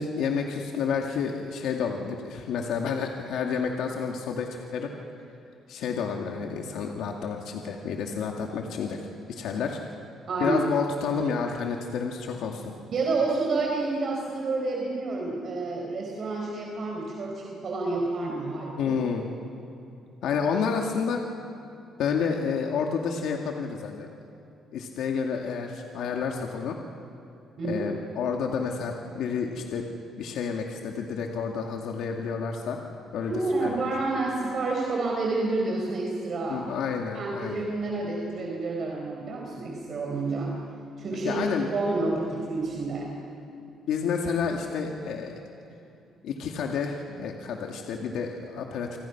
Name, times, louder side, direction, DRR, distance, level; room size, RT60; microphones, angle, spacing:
voice 1, 0.0-4.9 5.7-9.0 9.3-9.8 10.4-12.7 18.8-19.2 20.2-21.2 22.0-24.1 24.7-26.8 27.6-29.9 30.2-32.8 33.1-33.8 36.5-37.7 41.2-41.7 43.9-45.4 46.2-49.0, left 6 dB, 80° left, 1 dB, 2.2 m, -30 dB
voice 2, 10.3-10.6 12.9-19.0 27.6-27.8 33.3-36.6 37.1-40.6 41.0-43.1, right 3 dB, 45° right, -1 dB, 4.3 m, -29 dB
29.0 x 25.5 x 6.0 m, 2.8 s
cardioid pair, 135°, 0 cm